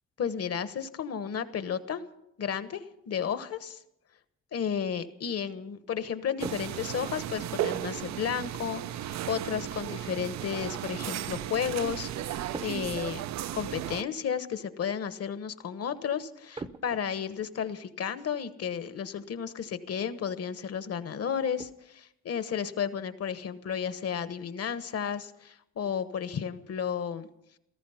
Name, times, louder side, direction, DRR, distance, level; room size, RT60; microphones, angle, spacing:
voice 1, 0.2-2.0 2.4-3.8 4.5-13.2 13.5-27.3, left 7 dB, 55° left, 12 dB, 1.2 m, -33 dB
sound 1, 6.4-7.6 8.5-8.7 12.5-13.0 13.3-13.4 14.0-14.2 16.5-17.5 18.9-19.0 19.5-19.6 20.0-20.2 20.6-20.7 21.1-21.9, right 3 dB, 15° right, 0.7 m, -43 dB
sound 2, 6.4-14.0, right 12 dB, 65° right, 0.5 m, -35 dB
16.5 x 14.0 x 5.7 m, 0.80 s
cardioid pair, 90°, 30 cm